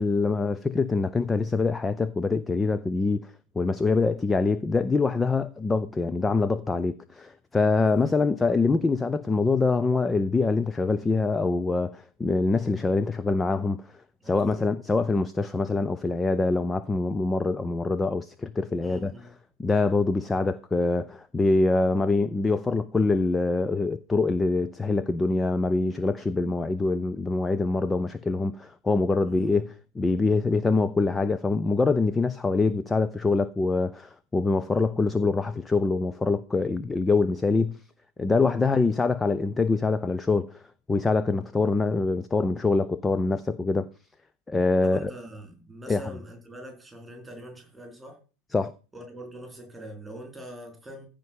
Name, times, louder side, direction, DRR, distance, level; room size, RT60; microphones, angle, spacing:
voice 1, 0.0-3.3 3.6-13.8 14.3-19.1 19.6-37.8 38.2-40.5 40.9-43.9 44.5-45.1 45.9-46.0 48.5-48.7, left 3 dB, 10° left, 0.5 m, -24 dB
voice 2, 14.2-14.6 18.8-19.4 29.2-29.6 44.8-48.2 48.9-51.1, right 1 dB, 5° right, 4.5 m, -43 dB
14.5 x 5.2 x 5.5 m
figure-of-eight pair, 90°, 0 cm